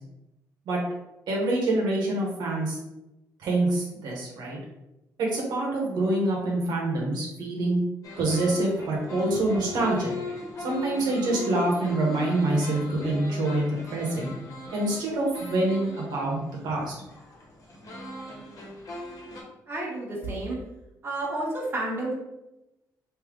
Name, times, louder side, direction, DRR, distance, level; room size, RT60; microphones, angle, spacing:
voice 1, 1.3-2.8 3.4-4.6 5.2-7.8 8.2-10.1 10.6-13.6 13.9-14.3 14.7-16.9, right 2 dB, 80° right, -2 dB, 1.1 m, -26 dB
sound 1, 8.0-19.4, left 2 dB, 50° left, 1.2 m, -40 dB
voice 2, 19.7-20.6 21.0-22.1, right 2 dB, 30° right, -4 dB, 1.3 m, -30 dB
3.3 x 2.8 x 3.7 m, 0.92 s
cardioid pair, 110°, 7 cm